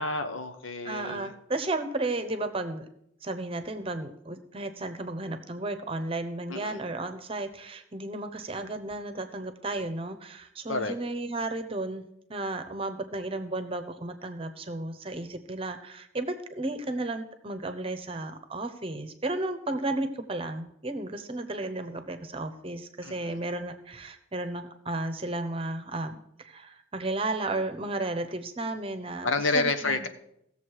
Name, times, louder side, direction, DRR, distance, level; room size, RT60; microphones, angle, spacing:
voice 1, 0.0-1.3 6.5-6.8 10.7-10.9 23.0-23.4 29.2-30.1, left 3 dB, 85° left, 8 dB, 1.1 m, -29 dB
voice 2, 0.8-2.9 3.2-12.0 12.3-30.1, right 2 dB, 30° right, 9 dB, 0.9 m, -33 dB
16.5 x 7.0 x 4.8 m, 0.76 s
head